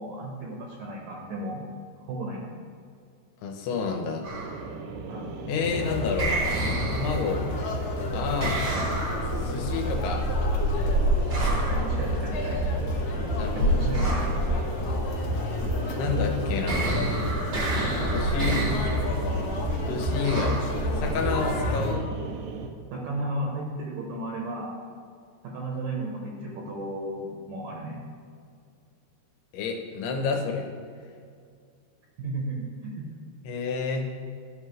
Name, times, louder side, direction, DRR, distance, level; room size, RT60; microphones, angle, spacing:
voice 1, 0.0-1.6 2.1-2.6 5.1-5.4 11.7-12.6 13.5-14.2 22.9-24.8 25.4-28.0 32.2-33.1, right 1 dB, 70° right, -2 dB, 2.1 m, -34 dB
voice 2, 3.4-4.3 5.5-6.4 6.9-7.5 8.1-8.6 9.4-10.3 13.4-13.9 16.0-17.1 18.0-18.6 19.9-20.6 20.9-22.1 29.5-30.7 33.4-34.1, left 5 dB, 90° left, 3 dB, 2.9 m, -29 dB
sound 1, 4.2-4.6 6.2-7.4 8.4-9.4 11.3-11.9 13.9-14.4 16.7-19.1 20.2-20.7, right 2 dB, 55° right, 1.1 m, -30 dB
sound 2, 4.3-22.7, right 4 dB, 85° right, 1.8 m, -38 dB
Conversation, 5.6-21.9, equal, 70° left, 1.7 m, -28 dB
13.5 x 5.6 x 3.2 m, 2.3 s
omnidirectional pair, 4.6 m